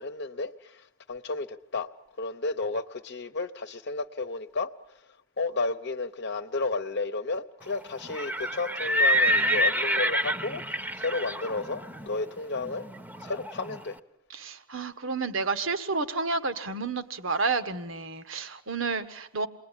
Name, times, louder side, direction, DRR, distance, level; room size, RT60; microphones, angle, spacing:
voice 1, 0.0-1.9 2.2-5.1 5.4-12.9 13.2-14.0, left 3 dB, 55° left, 1.0 m, -32 dB
Livestock farm animals working animals, 8.0-13.8, equal, 10° right, 1.0 m, -28 dB
voice 2, 14.3-19.5, right 4 dB, 70° right, 1.5 m, -30 dB
29.0 x 20.5 x 9.9 m
head